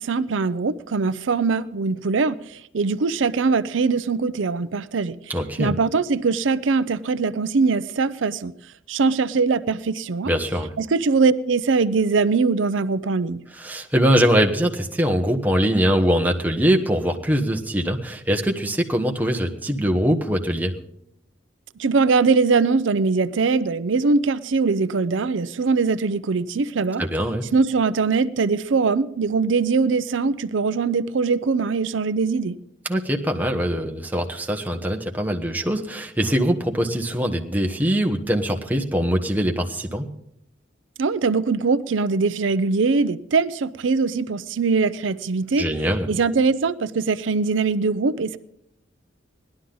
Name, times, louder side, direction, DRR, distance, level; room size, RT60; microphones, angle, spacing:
voice 1, 0.0-5.2 5.6-8.5 8.9-10.3 10.8-13.4 21.8-27.0 27.5-32.6 41.0-45.7 46.1-48.4, right 4 dB, 85° right, 0.5 m, -22 dB
voice 2, 5.3-5.7 10.2-10.7 13.5-20.7 27.0-27.4 32.9-40.1 45.6-46.1, equal, 10° right, 1.1 m, -22 dB
18.0 x 11.5 x 3.9 m
head